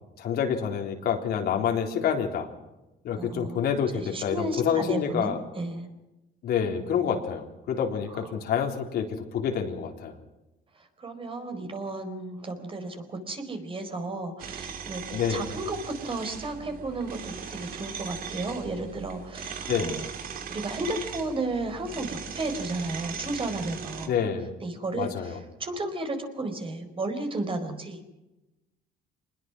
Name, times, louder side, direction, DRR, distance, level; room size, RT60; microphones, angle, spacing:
voice 1, 0.2-2.5 3.0-5.4 6.4-10.1 15.1-15.5 19.7-19.9 24.1-24.5 25.0-25.4, left 7 dB, 70° left, 3 dB, 3.8 m, -27 dB
voice 2, 3.2-3.6 3.9-5.9 8.1-8.3 11.0-20.1 20.5-24.1 24.6-28.0, right 2 dB, 30° right, 6 dB, 4.6 m, -33 dB
sound 1, 14.4-24.1, right 7 dB, 60° right, 2.9 m, -39 dB
25.0 x 20.5 x 6.2 m, 0.99 s
cardioid pair, 110°, 17 cm